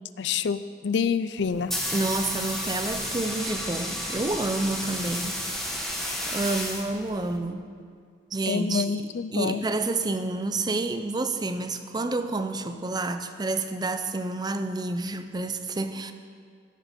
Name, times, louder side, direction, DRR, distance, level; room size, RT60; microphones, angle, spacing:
voice 1, 0.2-1.7 8.5-9.6, left 6 dB, 85° left, 14 dB, 0.4 m, -27 dB
sound 1, 1.4-7.4, equal, ahead, 1.3 m, -32 dB
voice 2, 1.9-5.4 6.3-7.7 8.3-16.1, right 2 dB, 25° right, 9 dB, 0.6 m, -29 dB
16.5 x 6.6 x 5.2 m, 2.2 s
head